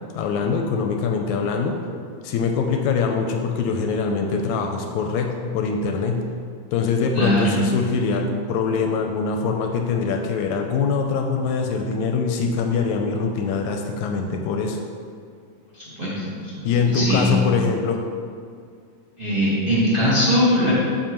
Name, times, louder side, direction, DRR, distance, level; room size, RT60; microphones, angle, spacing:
voice 1, 0.1-1.8 2.2-6.2 6.7-14.8 16.6-18.0, left 5 dB, 80° left, 3 dB, 1.8 m, -23 dB
voice 2, 7.1-7.6 15.7-16.7 16.9-17.3 19.2-20.7, equal, 45° right, -10 dB, 0.7 m, -21 dB
7.5 x 4.9 x 2.9 m, 2.2 s
omnidirectional pair, 3.5 m